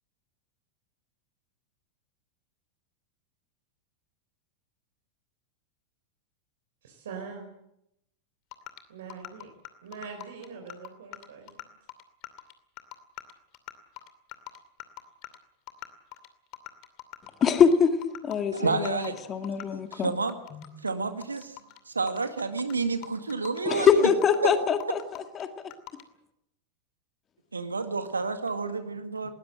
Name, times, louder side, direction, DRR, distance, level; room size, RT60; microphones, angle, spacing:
voice 1, 6.8-7.5 8.9-9.5 9.8-11.7 23.6-24.1, right 5 dB, 60° right, 3 dB, 4.4 m, -42 dB
sound 1, 8.5-8.8 9.1-11.6 11.9-15.4 15.7-16.3 16.5-17.5 17.7-17.8 18.0-19.6 19.9-20.9 21.2-22.8 23.0-23.6 23.9-24.5 24.8-25.4 25.7-26.0, left 19 dB, 40° left, 2.5 m, -42 dB
voice 2, 17.4-20.1 20.5-20.6 23.7-25.5, left 7 dB, 25° left, 8 dB, 2.1 m, -24 dB
voice 3, 18.5-19.5 19.9-20.4 20.8-21.6 21.9-23.9 27.5-29.3, right 4 dB, 75° right, 9 dB, 1.8 m, -30 dB
20.5 x 19.5 x 7.7 m, 0.79 s
figure-of-eight pair, 90°, 0 cm